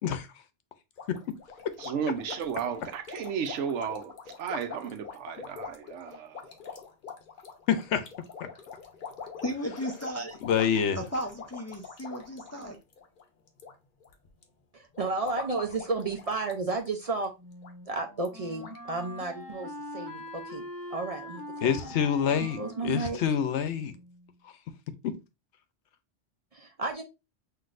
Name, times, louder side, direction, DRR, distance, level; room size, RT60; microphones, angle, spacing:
sound 1, 1.0-13.7 14.0-14.4 14.9-16.9 17.1-17.3 17.6-17.7 18.3-18.4 18.6-18.8, left 6 dB, 50° left, 0.9 m, -43 dB
voice 1, 1.8-6.4, right 7 dB, 90° right, 1.0 m, -34 dB
voice 2, 7.7-8.0 10.4-11.0 21.6-23.9 25.0-25.1, left 8 dB, 80° left, 0.9 m, -27 dB
voice 3, 9.4-10.4 10.9-12.8, equal, 25° left, 0.3 m, -35 dB
voice 4, 14.7-17.3 17.9-20.6 20.9-22.1 22.6-23.2 26.5-27.0, right 3 dB, 45° right, 0.5 m, -33 dB
Wind instrument woodwind instrument, 17.4-24.2, left 1 dB, 15° right, 1.4 m, -43 dB
5.9 x 2.7 x 2.5 m
omnidirectional pair, 1.2 m